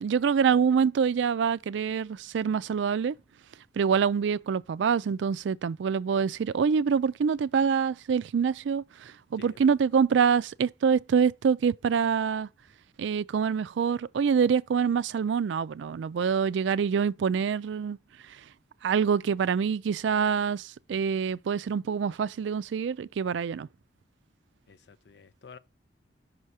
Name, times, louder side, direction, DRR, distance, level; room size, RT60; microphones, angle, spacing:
voice 1, 0.0-3.2 3.8-12.5 13.0-18.0 18.8-23.7, right 6 dB, 80° right, 0.3 m, -26 dB
voice 2, 9.4-9.7 24.7-25.6, left 5 dB, 65° left, 0.5 m, -50 dB
5.6 x 4.7 x 4.2 m
head